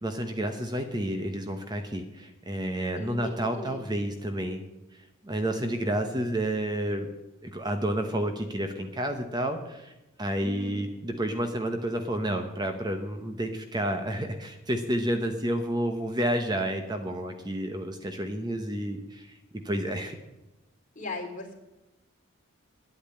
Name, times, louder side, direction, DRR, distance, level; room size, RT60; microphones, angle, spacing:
voice 1, 0.0-4.6 5.2-7.1 7.4-9.9 10.2-19.4 19.6-20.2, right 1 dB, 20° right, 6 dB, 0.9 m, -30 dB
voice 2, 2.9-3.8 10.4-10.8 20.9-21.5, left 3 dB, 40° left, 0 dB, 3.1 m, -38 dB
10.5 x 8.7 x 8.8 m, 1.0 s
head